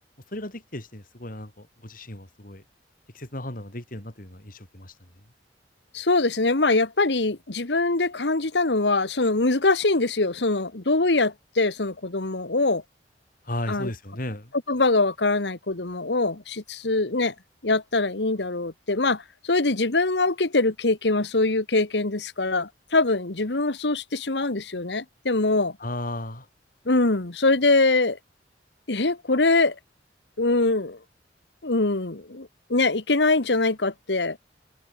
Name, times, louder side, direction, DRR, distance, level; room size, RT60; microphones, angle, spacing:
voice 1, 0.3-2.6 3.1-4.9 13.4-14.5 25.8-26.5, left 1 dB, 50° left, 5.1 m, -35 dB
voice 2, 5.9-12.8 13.7-13.9 14.7-17.3 17.6-25.8 26.9-28.2 28.9-29.8 30.4-31.0 31.6-34.4, left 3 dB, 75° left, 1.6 m, -23 dB
head